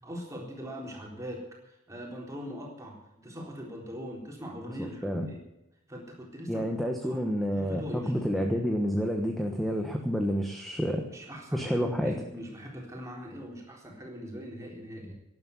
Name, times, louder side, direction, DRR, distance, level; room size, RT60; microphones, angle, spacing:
voice 1, 0.0-5.4 5.9-7.2 7.6-8.1 11.1-15.1, equal, 15° right, -1 dB, 3.9 m, -41 dB
voice 2, 4.8-5.3 6.5-11.0 11.5-12.1, equal, ahead, 3 dB, 1.2 m, -29 dB
12.0 x 11.0 x 8.3 m, 0.88 s
head